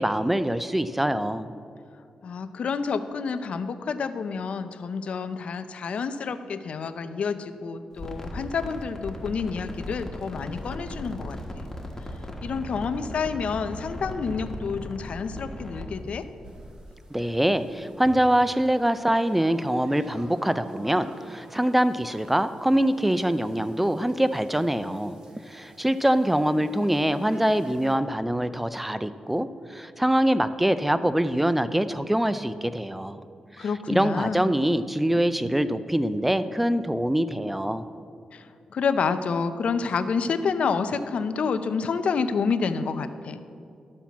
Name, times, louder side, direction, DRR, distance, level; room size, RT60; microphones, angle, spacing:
voice 1, 0.0-1.5 17.1-25.2 25.5-33.2 33.6-37.8, right 1 dB, 5° right, 12 dB, 0.4 m, -24 dB
voice 2, 2.2-11.7 12.4-16.3 33.6-34.5 38.3-38.4 38.7-43.4, left 5 dB, 65° left, 10 dB, 0.5 m, -29 dB
sound 1, 7.9-16.5, left 1 dB, 20° left, 1.3 m, -37 dB
sound 2, 16.4-28.0, right 1 dB, 35° right, 1.1 m, -50 dB
12.0 x 4.3 x 7.2 m, 2.4 s
cardioid pair, 90°, 2 cm